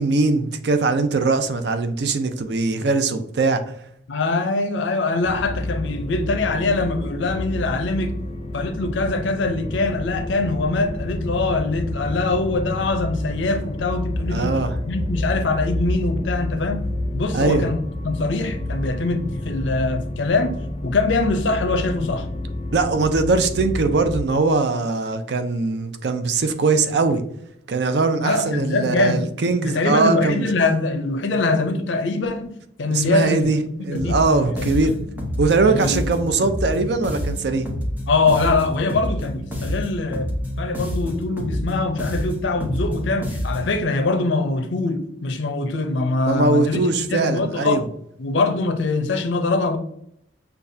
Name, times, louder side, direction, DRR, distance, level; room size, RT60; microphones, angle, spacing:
voice 1, 0.0-3.6 14.3-14.8 17.3-17.7 22.7-27.2 27.7-30.5 32.9-33.6 33.8-35.0 35.4-37.7 46.3-47.8, right 3 dB, 65° right, 0.5 m, -21 dB
voice 2, 4.1-8.1 8.5-14.6 14.9-16.8 17.1-17.8 18.0-20.6 20.8-22.3 28.2-29.3 29.6-33.5 33.9-34.2 34.6-34.9 35.7-36.1 38.1-40.3 40.6-46.8 47.1-47.8 48.2-49.8, left 3 dB, 90° left, 0.6 m, -23 dB
sound 1, 5.2-24.2, left 1 dB, 30° left, 0.3 m, -29 dB
sound 2, 33.9-43.8, left 1 dB, 10° right, 0.9 m, -28 dB
6.7 x 2.3 x 2.7 m
head